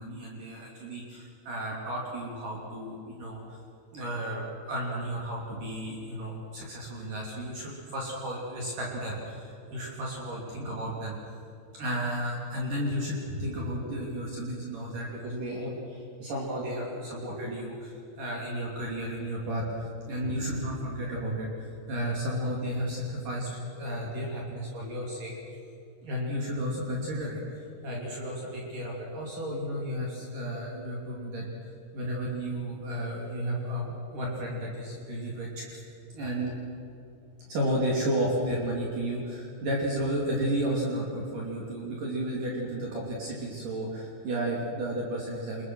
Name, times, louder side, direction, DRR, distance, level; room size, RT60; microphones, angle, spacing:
voice 1, 0.0-3.6 3.9-11.2 11.7-23.5 23.8-25.3 26.0-31.5 31.9-35.8 36.1-36.6 37.5-45.6, right 1 dB, 50° right, -3 dB, 4.4 m, -33 dB
28.0 x 22.0 x 6.3 m, 2.7 s
omnidirectional pair, 5.1 m